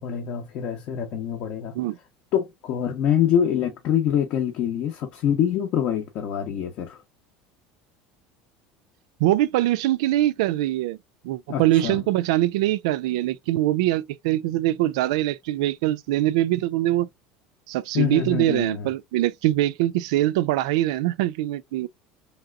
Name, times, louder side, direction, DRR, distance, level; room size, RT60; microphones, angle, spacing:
voice 1, 0.0-1.8 2.3-7.0 11.5-12.0 17.9-18.9, left 9 dB, 45° left, 0.6 m, -25 dB
voice 2, 9.2-11.0 11.2-17.1 17.7-21.9, right 15 dB, 85° right, 0.4 m, -23 dB
3.2 x 2.9 x 2.3 m
cardioid pair, 160°, 3 cm